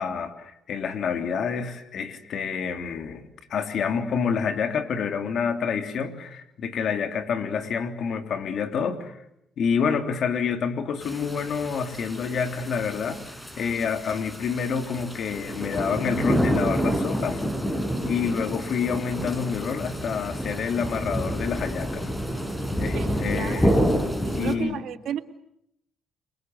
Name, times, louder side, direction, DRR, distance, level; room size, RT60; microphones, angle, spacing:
voice 1, 0.0-3.2 3.5-9.2 9.6-13.2 13.6-17.4 18.0-22.1 22.8-23.7 24.3-24.8, left 6 dB, 65° left, 7 dB, 3.3 m, -28 dB
sound 1, 11.0-24.6, equal, 10° left, 5.1 m, -28 dB
voice 2, 23.3-23.9 24.2-25.2, right 10 dB, 75° right, 9 dB, 2.0 m, -33 dB
29.0 x 23.5 x 8.0 m, 0.76 s
cardioid pair, 90°, 0 cm